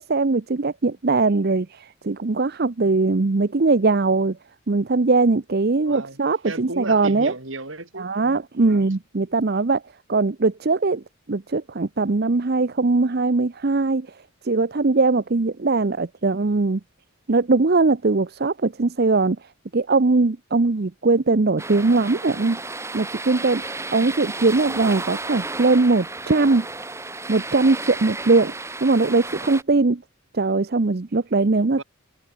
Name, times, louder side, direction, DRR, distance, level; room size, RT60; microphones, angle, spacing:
voice 1, 0.0-4.4 4.7-7.3 8.0-9.8 10.1-11.0 11.3-14.1 14.4-16.8 17.3-19.4 19.7-22.6 22.9-26.7 27.3-28.5 28.8-30.0 30.3-31.8, right 3 dB, 45° right, 0.6 m, -20 dB
voice 2, 5.8-6.2 6.4-8.4 8.6-8.9 31.7-31.8, right 2 dB, 60° right, 3.7 m, -35 dB
sound 1, 21.6-29.6, right 3 dB, 10° right, 1.8 m, -33 dB
head